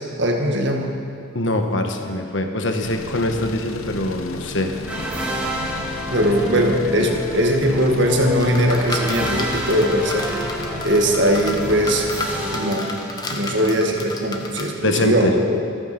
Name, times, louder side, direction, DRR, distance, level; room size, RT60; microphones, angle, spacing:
voice 1, 0.2-0.9 6.1-10.3 10.8-12.1 12.5-12.9 13.3-15.6, equal, 60° right, 2 dB, 1.8 m, -20 dB
voice 2, 1.3-4.7 6.8-7.1 14.8-15.4, left 1 dB, 65° left, 5 dB, 1.3 m, -23 dB
sound 1, 2.8-12.6, left 2 dB, 90° left, 1.0 m, -35 dB
sound 2, 4.9-13.7, right 1 dB, 5° right, 1.9 m, -30 dB
sound 3, 8.4-14.7, left 2 dB, 20° left, 1.1 m, -32 dB
14.5 x 14.0 x 6.0 m, 2.6 s
head